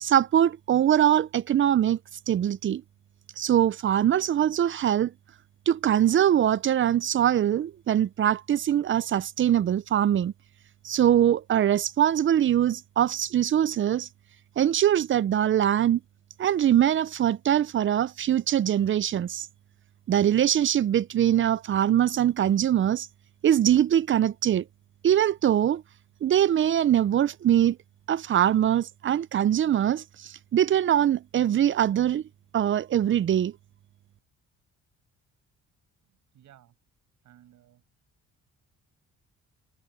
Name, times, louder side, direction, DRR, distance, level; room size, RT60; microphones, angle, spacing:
voice 1, 0.0-2.0 2.3-2.8 3.4-5.1 5.7-10.3 10.8-14.1 14.6-16.0 16.4-19.5 20.1-23.1 23.4-24.6 25.0-25.8 26.2-27.8 28.1-32.2 32.5-33.5, right 10 dB, 40° right, 0.5 m, -23 dB
voice 2, 36.0-36.7 37.2-37.8, right 12 dB, 75° right, 6.3 m, -57 dB
cardioid pair, 90°, 30 cm